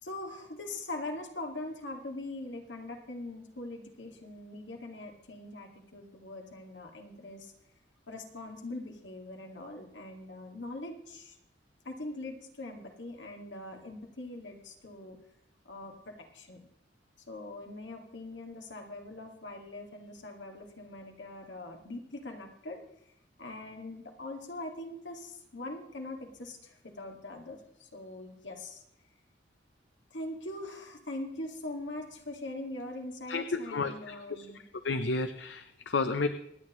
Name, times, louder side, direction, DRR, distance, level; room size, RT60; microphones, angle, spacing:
voice 1, 0.0-7.5 8.1-11.4 11.8-15.2 15.7-16.6 17.3-22.8 23.4-28.8 30.1-34.6, left 2 dB, 90° left, 2 dB, 2.2 m, -42 dB
voice 2, 33.3-34.5 34.8-36.3, left 3 dB, 75° left, 9 dB, 0.6 m, -32 dB
25.5 x 9.2 x 3.1 m, 0.74 s
head